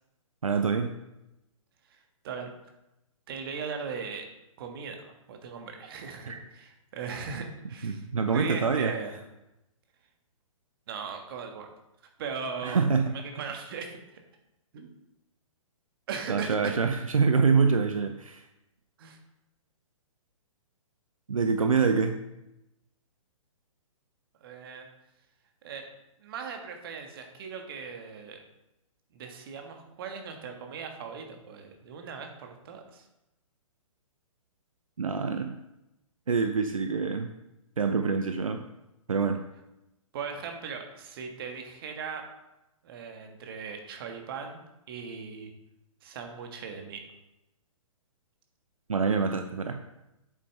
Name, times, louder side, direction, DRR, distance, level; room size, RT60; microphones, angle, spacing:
voice 1, 0.4-1.0 6.3-6.4 7.3-7.4 7.8-8.9 12.6-13.4 16.3-18.5 21.3-22.2 35.0-35.6 36.3-37.3 37.8-38.6 39.1-39.5 48.9-49.8, right 5 dB, 75° right, 7 dB, 0.6 m, -26 dB
voice 2, 3.3-4.3 4.6-8.0 8.3-9.1 10.9-11.7 12.2-12.8 13.1-14.0 14.7-14.9 16.1-16.8 19.0-19.2 24.4-24.9 25.6-25.8 26.2-28.4 29.1-33.0 40.1-42.2 42.8-44.6 44.9-45.5 46.0-47.0, right 5 dB, 40° right, 4 dB, 1.4 m, -38 dB
8.4 x 7.2 x 3.2 m, 0.92 s
figure-of-eight pair, 125°, 18 cm